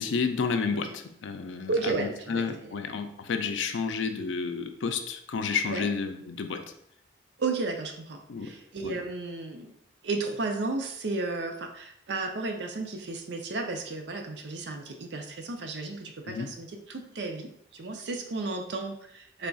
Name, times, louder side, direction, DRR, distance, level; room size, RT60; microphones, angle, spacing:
voice 1, 0.0-6.6 8.3-8.5 8.8-9.0 16.2-16.5, left 5 dB, 75° left, 7 dB, 0.4 m, -31 dB
voice 2, 1.7-2.7 5.7-5.9 7.4-9.7 10.0-19.5, right 3 dB, 65° right, 4 dB, 0.5 m, -33 dB
3.4 x 2.3 x 3.9 m, 0.72 s
head